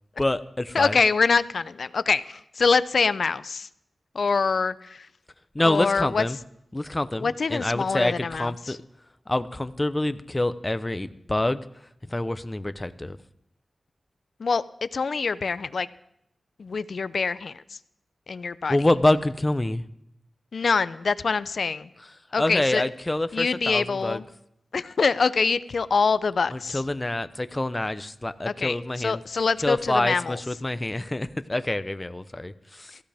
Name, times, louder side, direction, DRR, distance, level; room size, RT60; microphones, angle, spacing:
voice 1, 0.2-1.0 5.5-6.4 6.7-8.8 9.3-11.6 12.1-13.2 18.7-19.8 22.4-24.2 26.5-29.2 29.6-33.0, left 1 dB, 25° left, 12 dB, 0.7 m, -26 dB
voice 2, 0.7-3.7 4.1-5.1 5.6-6.2 7.2-8.8 14.4-15.9 16.6-17.8 18.3-18.8 20.5-21.9 22.3-22.8 23.3-24.2 24.7-26.8 28.5-30.4, left 4 dB, 70° left, 15 dB, 0.5 m, -25 dB
15.5 x 15.5 x 3.5 m, 0.79 s
cardioid pair, 55°, 0 cm